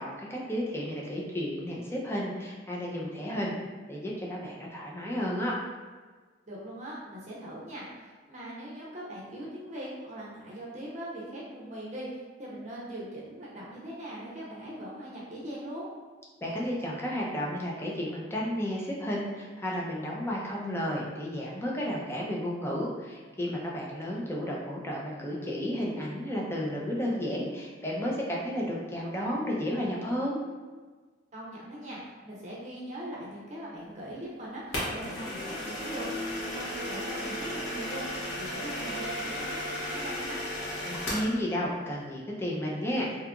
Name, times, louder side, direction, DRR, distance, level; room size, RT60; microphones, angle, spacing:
voice 1, 0.0-3.5 3.9-5.6 16.4-30.4 40.9-43.2, equal, 15° left, -3 dB, 0.5 m, -32 dB
voice 2, 6.5-15.9 24.0-24.2 31.3-36.0 36.5-40.4, right 1 dB, 40° right, -6 dB, 0.6 m, -41 dB
sound 1, 34.7-41.3, left 1 dB, 70° left, 1.0 m, -34 dB
2.8 x 2.4 x 3.6 m, 1.4 s
head